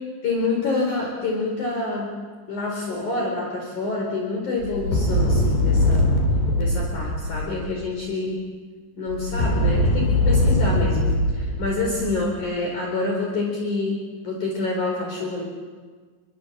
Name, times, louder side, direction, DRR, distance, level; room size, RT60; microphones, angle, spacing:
voice 1, 0.2-2.1 2.5-6.1 6.6-8.4 9.0-14.0 14.2-15.4, left 3 dB, 50° left, -1 dB, 5.5 m, -27 dB
sound 1, 4.6-7.9 9.1-12.4, left 1 dB, 80° left, 6.0 m, -21 dB
29.0 x 23.0 x 7.5 m, 1.5 s
omnidirectional pair, 4.7 m